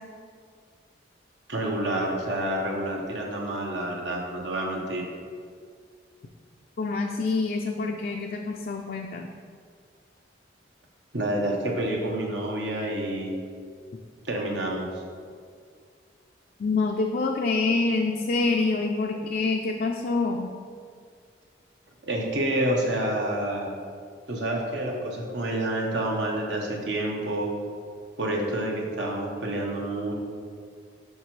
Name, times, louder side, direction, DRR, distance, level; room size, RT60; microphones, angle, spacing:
voice 1, 1.5-5.1 11.1-13.3 14.2-14.9 22.0-23.7 24.3-27.5 28.2-30.1, right 1 dB, 75° right, -1 dB, 1.2 m, -28 dB
voice 2, 6.8-9.3 16.6-20.5, left 3 dB, 50° left, 2 dB, 0.4 m, -26 dB
8.0 x 5.9 x 3.2 m, 2.1 s
head